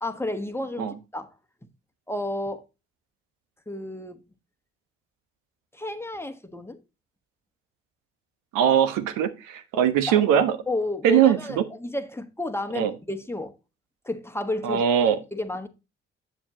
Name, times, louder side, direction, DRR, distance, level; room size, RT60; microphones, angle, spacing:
voice 1, 0.0-1.3 2.1-2.6 3.7-4.2 5.7-6.8 9.7-10.3 10.7-13.6 14.0-15.7, left 2 dB, 5° left, 1.4 m, -32 dB
voice 2, 8.5-10.6 11.0-11.6 12.7-12.9 14.6-15.2, right 9 dB, 70° right, 1.2 m, -21 dB
8.0 x 7.1 x 2.9 m
hypercardioid pair, 50°, 34 cm